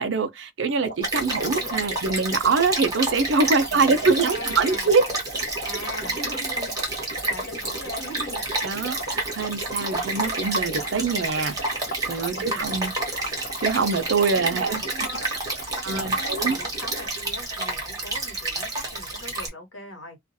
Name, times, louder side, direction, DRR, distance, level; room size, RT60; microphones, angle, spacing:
voice 1, 0.0-5.1 5.3-5.5 8.6-11.6 12.1-12.9 13.2-13.3 13.6-14.8 15.8-16.6, right 4 dB, 70° right, 0.5 m, -24 dB
sound 1, 0.8-17.3, right 1 dB, 55° left, 0.9 m, -38 dB
Stream, 1.0-19.5, right 2 dB, 20° right, 0.9 m, -30 dB
voice 2, 1.2-1.8 3.7-4.9 5.6-8.4 12.3-12.7 14.5-15.3 15.8-20.2, left 1 dB, 85° left, 1.2 m, -40 dB
2.4 x 2.3 x 2.6 m
head